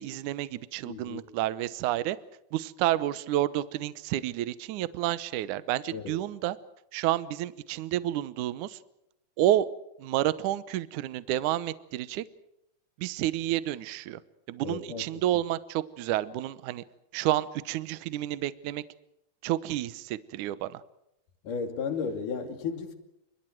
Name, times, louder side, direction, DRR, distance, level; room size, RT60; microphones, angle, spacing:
voice 1, 0.0-2.2 2.5-6.6 6.9-8.8 9.4-9.7 10.0-12.2 13.0-14.2 14.5-16.8 17.1-18.8 19.4-20.8, right 13 dB, 70° right, 2.1 m, -30 dB
voice 2, 0.9-1.2 5.9-6.1 14.6-15.0 21.4-22.9, left 5 dB, 60° left, 4.2 m, -34 dB
29.0 x 26.5 x 4.7 m
omnidirectional pair, 4.3 m